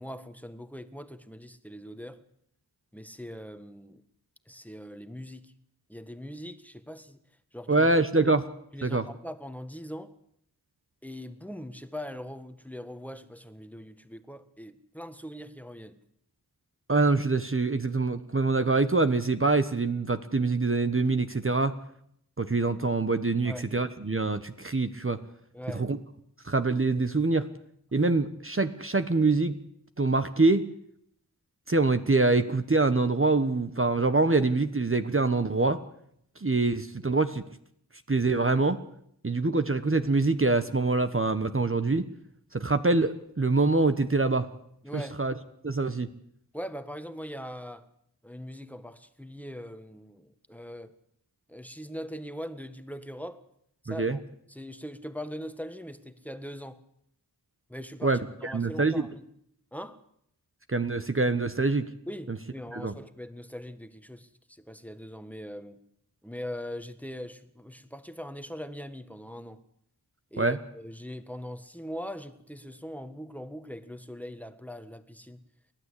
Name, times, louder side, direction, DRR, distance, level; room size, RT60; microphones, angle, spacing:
voice 1, 0.0-2.2 2.9-4.0 4.5-5.5 5.9-7.2 7.5-7.9 8.2-8.3 8.7-10.1 11.0-16.0 23.4-23.7 25.5-25.9 44.8-45.2 46.5-47.9 48.2-50.9 51.5-53.4 53.8-54.2 54.5-56.8 57.7-59.3 59.7-60.0 62.1-65.8 66.2-69.6 70.3-75.4, equal, 5° left, 10 dB, 1.6 m, -41 dB
voice 2, 7.7-8.4 8.8-9.0 16.9-21.7 22.4-25.2 25.7-26.0 26.4-27.5 27.9-29.6 30.0-30.7 31.7-35.8 36.4-37.4 38.1-38.8 39.2-42.0 42.5-44.5 44.9-45.3 45.6-46.1 53.9-54.2 58.0-59.1 60.7-61.9 62.3-62.4 62.7-62.9 70.4-70.6, right 3 dB, 30° right, 9 dB, 1.2 m, -25 dB
29.5 x 12.0 x 8.5 m, 0.73 s
wide cardioid pair, 50°, 40 cm